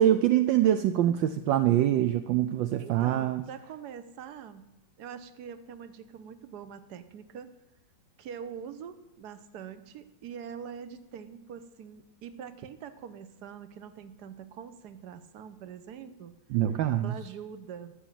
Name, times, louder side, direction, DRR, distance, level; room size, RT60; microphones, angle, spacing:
voice 1, 0.0-3.4 16.5-17.1, right 12 dB, 75° right, 10 dB, 1.3 m, -24 dB
voice 2, 2.8-7.5 8.2-16.3 16.8-17.9, right 8 dB, 60° right, 12 dB, 1.4 m, -44 dB
13.0 x 7.1 x 9.0 m, 1.0 s
omnidirectional pair, 2.2 m